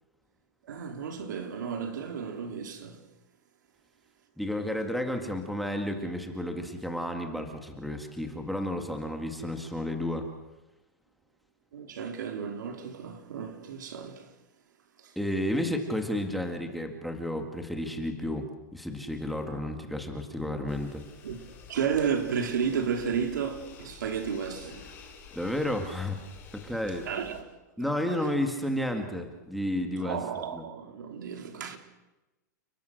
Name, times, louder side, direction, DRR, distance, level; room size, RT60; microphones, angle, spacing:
voice 1, 0.6-3.1 11.7-14.3 15.0-15.1 21.2-21.4 21.7-24.9 27.1-27.5 27.8-28.3 29.9-31.8, right 7 dB, 85° right, 3.6 m, -33 dB
voice 2, 4.4-10.3 15.2-21.0 25.3-26.2 26.5-27.1 27.8-30.2 30.5-30.6, left 1 dB, ahead, 2.0 m, -32 dB
sound 1, 20.7-27.4, left 6 dB, 20° left, 6.1 m, -50 dB
30.0 x 21.0 x 6.6 m
supercardioid pair, 165°, 10 cm